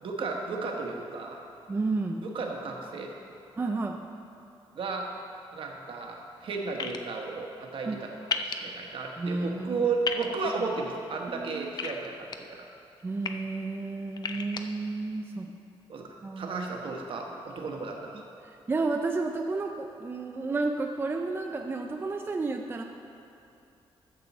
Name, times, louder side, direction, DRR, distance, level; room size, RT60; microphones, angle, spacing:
voice 1, 0.0-1.4 2.2-3.1 4.7-5.1 5.5-8.2 8.4-12.7 14.3-14.4 15.9-18.2, right 4 dB, 60° right, 1 dB, 1.2 m, -34 dB
voice 2, 1.7-2.2 3.6-4.0 7.9-8.0 9.2-9.9 11.3-11.7 13.0-15.5 16.2-16.6 18.7-22.8, right 3 dB, 20° right, 3 dB, 0.4 m, -31 dB
sound 1, 6.8-7.0 8.3-8.6 10.0-10.3 11.8-12.4 13.0-13.3 14.2-14.6, left 6 dB, 45° left, 0.5 m, -31 dB
14.0 x 6.1 x 4.1 m, 2.6 s
wide cardioid pair, 140°, 10 cm